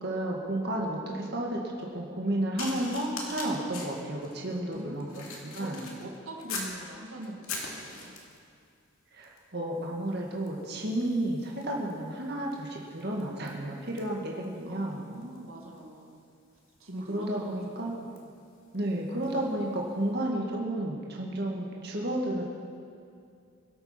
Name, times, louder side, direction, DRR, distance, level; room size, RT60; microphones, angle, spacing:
voice 1, 0.0-5.9 9.1-15.1 17.1-18.0 18.7-22.4, right 1 dB, 50° right, -2 dB, 1.9 m, -32 dB
sound 1, 2.6-6.8 7.2-8.5 9.2-9.5 9.8-19.4 20.1-20.3, left 3 dB, 85° left, 2.4 m, -44 dB
voice 2, 4.7-5.7 6.0-8.1 10.7-11.0 14.6-16.2 16.8-18.0, right 1 dB, 80° right, 0 dB, 1.9 m, -43 dB
24.0 x 8.2 x 5.8 m, 2.4 s
head